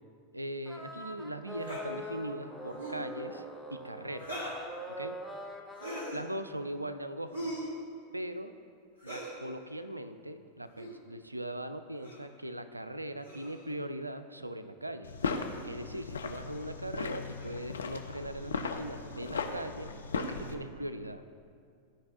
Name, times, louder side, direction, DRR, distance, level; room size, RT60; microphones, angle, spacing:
voice 1, 0.3-3.4 3.7-4.5 4.9-5.2 6.1-7.6 8.1-8.5 9.0-15.2 15.6-19.9 20.2-21.2, right 1 dB, 85° right, 10 dB, 0.3 m, -40 dB
sound 1, 0.7-6.1, equal, ahead, 0.7 m, -43 dB
sound 2, 1.6-1.9 2.7-3.0 4.2-4.6 5.7-6.2 7.3-7.7 9.0-9.4 10.7-10.9 12.0-12.3 13.2-13.7 15.4-15.5 16.5-16.7 17.4-17.6 18.4-18.6 20.1-20.5, right 1 dB, 85° left, 1.9 m, -41 dB
sound 3, 15.0-20.5, left 4 dB, 70° left, 0.5 m, -37 dB
13.0 x 4.9 x 2.9 m, 2.3 s
figure-of-eight pair, 90°, 0 cm